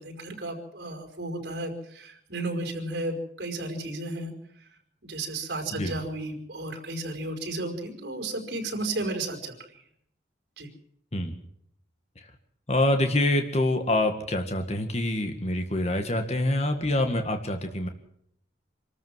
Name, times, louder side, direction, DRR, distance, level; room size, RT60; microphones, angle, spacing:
voice 1, 0.0-4.3 5.0-9.5 10.6-10.7, right 2 dB, 60° right, 5 dB, 5.2 m, -33 dB
voice 2, 12.7-17.9, left 1 dB, 35° left, 6 dB, 1.9 m, -26 dB
27.0 x 14.0 x 7.6 m, 0.71 s
head